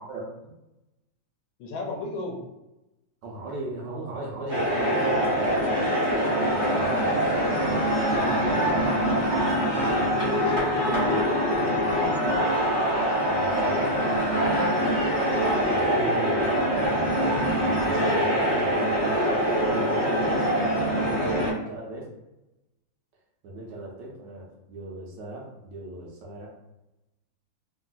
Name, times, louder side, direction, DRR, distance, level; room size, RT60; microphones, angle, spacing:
voice 1, 0.1-0.5 3.2-7.2 8.2-8.9 13.2-13.9 15.7-19.2 19.6-22.1 23.4-26.5, right 2 dB, 70° right, -3 dB, 1.3 m, -38 dB
voice 2, 1.6-2.4 6.6-7.0 7.7-8.8 9.5-11.2 13.3-13.9, left 3 dB, 75° left, 0 dB, 1.2 m, -37 dB
sound 1, 4.5-21.5, equal, 45° right, 0.6 m, -24 dB
3.3 x 2.6 x 2.3 m, 0.96 s
omnidirectional pair, 2.2 m